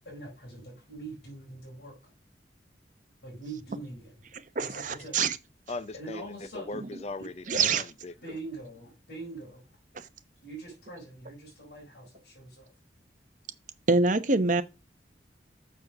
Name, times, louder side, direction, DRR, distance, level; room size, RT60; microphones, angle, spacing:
voice 1, 0.0-2.1 3.2-4.1 4.6-5.2 5.9-6.8 8.2-9.6 10.4-12.7, right 2 dB, 65° left, 5.0 m, -43 dB
voice 2, 4.5-5.4 7.5-7.8 13.9-14.6, right 3 dB, 45° right, 0.9 m, -24 dB
voice 3, 5.7-8.4, left 3 dB, 35° left, 0.5 m, -39 dB
6.8 x 6.3 x 6.0 m
head